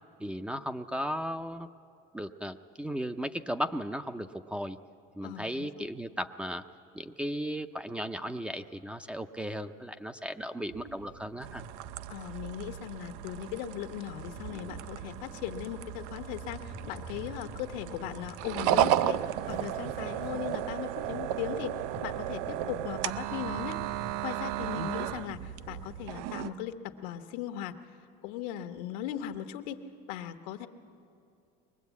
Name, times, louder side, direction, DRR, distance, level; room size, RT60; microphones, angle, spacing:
voice 1, 0.2-1.7 2.1-4.8 5.1-6.6 6.9-11.6 24.8-24.9, equal, 5° right, 9 dB, 0.4 m, -36 dB
voice 2, 5.2-5.9 12.1-19.2 19.5-21.8 22.0-27.8 28.2-29.8 30.1-30.7, left 11 dB, 80° left, 8 dB, 1.2 m, -38 dB
sound 1, 10.7-26.1, right 5 dB, 65° right, 1.9 m, -47 dB
sound 2, 11.4-26.5, right 12 dB, 90° right, 0.5 m, -34 dB
22.5 x 19.5 x 8.3 m, 2.5 s
cardioid pair, 135°, 20 cm